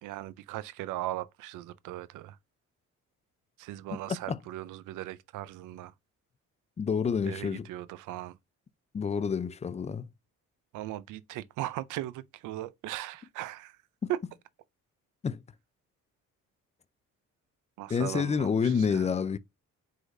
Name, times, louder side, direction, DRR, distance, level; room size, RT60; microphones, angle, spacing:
voice 1, 0.0-2.4 3.6-5.9 7.2-8.4 10.7-13.8 14.1-14.2 17.8-19.1, right 14 dB, 90° right, 0.5 m, -38 dB
voice 2, 4.1-4.4 6.8-7.7 8.9-10.1 14.0-14.1 15.2-15.4 17.9-19.4, left 6 dB, 20° left, 0.4 m, -28 dB
4.8 x 4.0 x 2.6 m
cardioid pair, 90°, 30 cm